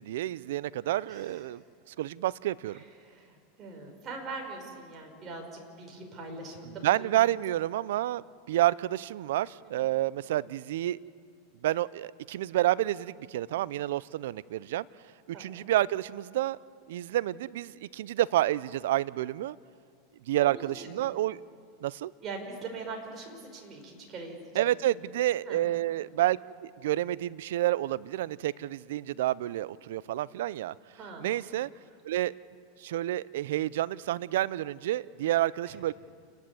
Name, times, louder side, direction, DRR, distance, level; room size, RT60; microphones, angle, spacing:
voice 1, 0.0-1.6 1.9-2.8 6.8-11.0 11.6-14.9 15.3-16.6 16.9-19.6 20.3-21.4 21.8-22.1 24.6-30.7 31.2-31.7 32.0-32.3 32.8-35.9, right 14 dB, 75° right, 20 dB, 0.5 m, -29 dB
voice 2, 1.1-1.4 2.7-7.0 9.6-9.9 15.3-15.7 20.4-21.1 22.2-24.6 25.5-25.6 31.0-31.3 35.7-35.8, right 3 dB, 35° right, 2 dB, 5.5 m, -42 dB
29.0 x 10.5 x 9.8 m, 2.2 s
hypercardioid pair, 115°, 0 cm